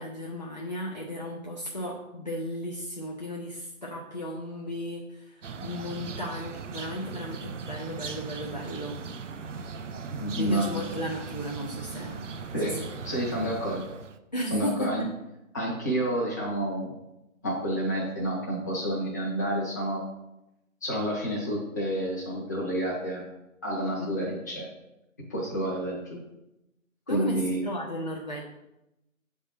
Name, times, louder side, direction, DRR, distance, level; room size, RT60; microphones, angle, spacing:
voice 1, 0.0-9.0 10.4-12.3 12.7-12.8 14.3-15.1 24.0-24.1 27.1-28.4, equal, 35° left, -3 dB, 0.5 m, -35 dB
sound 1, 5.4-14.2, right 5 dB, 60° right, 0.5 m, -39 dB
voice 2, 10.0-10.9 12.5-12.8 13.0-13.8 14.5-15.0 15.5-16.9 17.4-20.0 20.8-23.2 23.6-24.7 25.3-26.2 27.1-27.6, right 1 dB, 15° left, -6 dB, 0.9 m, -29 dB
7.1 x 3.6 x 4.2 m, 0.90 s
figure-of-eight pair, 160°, 41 cm